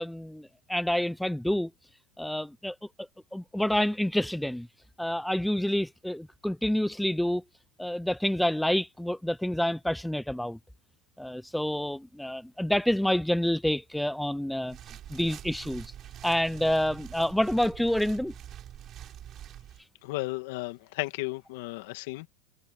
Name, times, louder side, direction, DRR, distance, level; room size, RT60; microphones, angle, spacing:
voice 1, 0.0-1.7 2.2-2.8 3.3-4.7 5.0-7.4 7.8-10.6 11.2-14.8 15.1-15.9 16.2-18.3, left 1 dB, ahead, 0.3 m, -28 dB
sound 1, 14.6-19.8, right 11 dB, 35° right, 6.1 m, -45 dB
voice 2, 20.0-22.3, left 21 dB, 70° left, 2.1 m, -34 dB
supercardioid pair, 130°, 0 cm